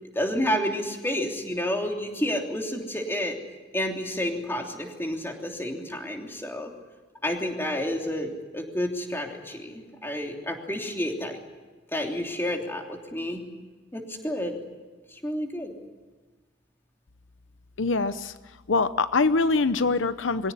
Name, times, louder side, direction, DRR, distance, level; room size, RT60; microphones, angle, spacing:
voice 1, 0.0-3.4 3.7-6.7 7.2-11.4 11.9-13.4 13.9-14.6 15.1-15.7, left 1 dB, 10° left, 2 dB, 3.1 m, -30 dB
voice 2, 17.8-18.3 18.7-20.5, left 3 dB, 90° left, 13 dB, 0.8 m, -23 dB
24.0 x 17.0 x 9.9 m, 1.3 s
head